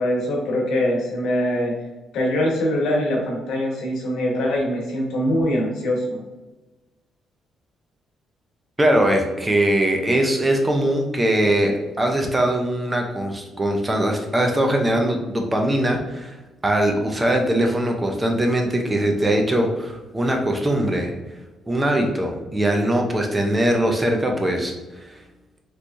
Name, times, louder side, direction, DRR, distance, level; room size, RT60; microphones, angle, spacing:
voice 1, 0.0-1.7 2.1-6.2, left 1 dB, 80° left, -2 dB, 1.0 m, -23 dB
voice 2, 8.8-16.4 16.6-21.1 21.7-25.2, right 1 dB, 20° right, 2 dB, 0.6 m, -21 dB
3.3 x 3.0 x 2.6 m, 1.1 s
cardioid pair, 90°, 0 cm